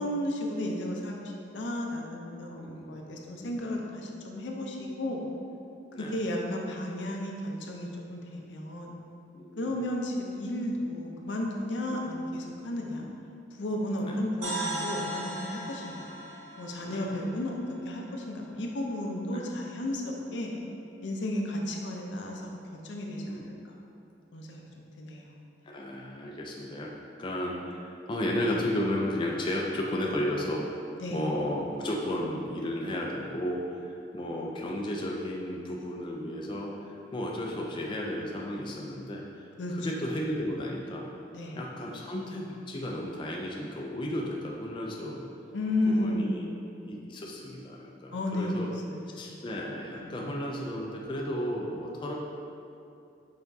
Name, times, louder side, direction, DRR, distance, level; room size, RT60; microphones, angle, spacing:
voice 1, 0.0-5.3 6.0-9.0 9.6-13.1 13.5-16.1 16.6-17.6 17.8-20.5 21.0-23.7 24.3-24.6 25.0-25.3 31.0-31.2 39.6-39.7 41.3-41.6 45.5-47.1 48.1-49.1 50.0-50.4, left 1 dB, 75° left, 0 dB, 0.6 m, -33 dB
voice 2, 2.6-3.1 3.4-3.6 5.9-6.2 9.3-9.8 12.9-13.0 14.0-14.2 16.8-17.2 19.3-19.4 20.3-20.4 23.1-23.5 25.6-26.9 27.2-30.7 31.1-39.5 39.7-41.1 41.5-45.3 45.9-48.7 49.1-52.1, left 1 dB, 25° left, -2 dB, 0.3 m, -34 dB
sound 1, 14.4-18.4, right 1 dB, 40° right, 1.0 m, -38 dB
5.7 x 3.5 x 2.7 m, 2.6 s
head